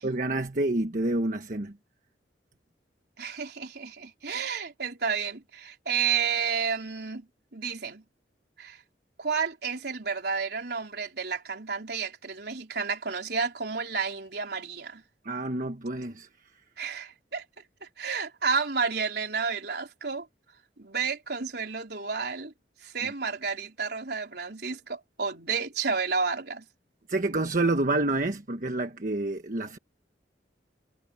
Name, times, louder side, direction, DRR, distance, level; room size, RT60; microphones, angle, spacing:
voice 1, 0.0-1.7 15.2-16.3 27.1-29.8, right 2 dB, 50° right, 1.3 m, -28 dB
voice 2, 3.2-7.3 7.5-8.0 8.6-8.8 9.2-15.0 16.8-17.4 17.8-20.3 20.8-22.5 22.8-26.6, right 5 dB, 65° right, 4.1 m, -31 dB
head